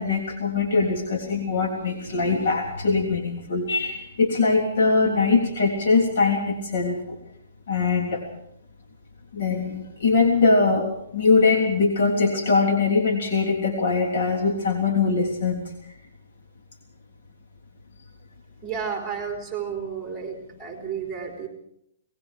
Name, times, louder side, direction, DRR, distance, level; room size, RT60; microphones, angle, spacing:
voice 1, 0.0-7.0 7.7-8.2 9.3-10.9 11.1-15.6, left 4 dB, 65° left, 2 dB, 3.4 m, -22 dB
voice 2, 18.6-21.5, right 7 dB, 5° right, 1 dB, 3.8 m, -32 dB
26.5 x 20.0 x 4.9 m, 0.75 s
hypercardioid pair, 160°, 0 cm